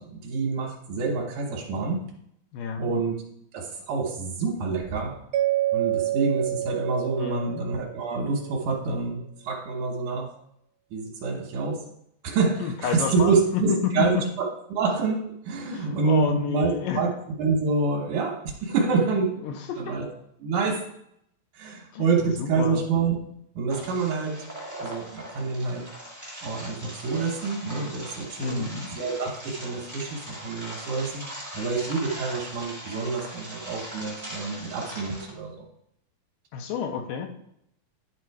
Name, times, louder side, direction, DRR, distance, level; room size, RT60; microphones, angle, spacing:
voice 1, 0.0-2.0 2.8-3.2 3.5-5.2 5.7-10.3 10.9-11.9 12.2-14.2 14.7-19.4 19.8-20.1 20.4-20.9 21.6-23.2 23.6-24.4 24.8-25.9 26.4-31.2 31.5-35.7, right 4 dB, 70° right, 0 dB, 2.3 m, -27 dB
voice 2, 2.5-3.0 7.2-7.6 12.6-14.1 15.7-17.0 19.4-20.0 21.9-22.8 28.4-28.9 36.5-37.3, left 7 dB, 75° left, 4 dB, 2.3 m, -30 dB
Mallet percussion, 5.3-8.3, right 13 dB, 85° right, 2.3 m, -28 dB
sound 1, 23.7-35.3, equal, 25° right, 0.3 m, -40 dB
11.0 x 3.8 x 4.7 m, 0.73 s
omnidirectional pair, 4.1 m